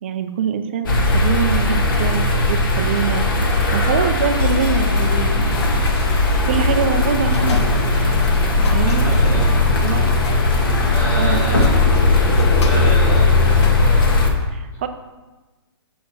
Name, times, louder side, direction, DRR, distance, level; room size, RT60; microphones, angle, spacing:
voice 1, 0.0-5.8 6.4-7.7 8.7-9.0 9.8-10.1 11.1-11.4 14.4-14.9, right 7 dB, 25° right, 8 dB, 0.4 m, -24 dB
sound 1, 0.9-14.3, left 2 dB, 50° left, 1.3 m, -17 dB
sound 2, 5.5-13.9, left 2 dB, 75° left, 1.1 m, -28 dB
voice 2, 8.8-9.5 10.9-11.7 12.6-13.5, equal, 10° left, -5 dB, 1.4 m, -29 dB
6.3 x 4.6 x 5.9 m, 1.2 s
hypercardioid pair, 175°, 14 cm